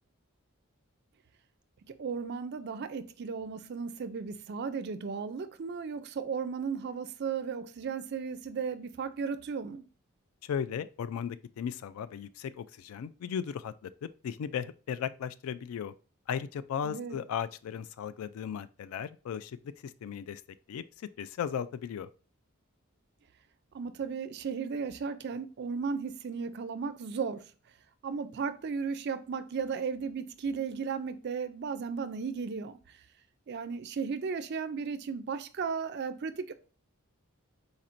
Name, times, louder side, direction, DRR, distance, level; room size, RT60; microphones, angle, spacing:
voice 1, 2.0-9.8 16.8-17.2 23.7-27.5 28.0-32.8 33.5-36.5, right 5 dB, 50° right, 0.4 m, -35 dB
voice 2, 10.4-15.9 16.3-19.6 19.8-20.4 20.7-22.1, left 8 dB, 75° left, 0.3 m, -36 dB
4.1 x 2.5 x 4.3 m
head